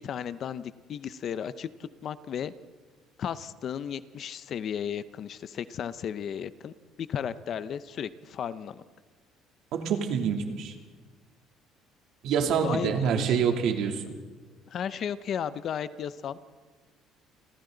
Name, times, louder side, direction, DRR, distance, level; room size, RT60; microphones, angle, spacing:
voice 1, 0.0-2.5 3.2-6.7 7.0-8.8 12.6-13.4 14.7-16.4, left 8 dB, 40° left, 14 dB, 0.7 m, -34 dB
voice 2, 9.7-10.7 12.2-14.0, right 7 dB, 65° right, 3 dB, 3.0 m, -26 dB
29.5 x 25.5 x 4.0 m, 1.4 s
cardioid pair, 155°, 0 cm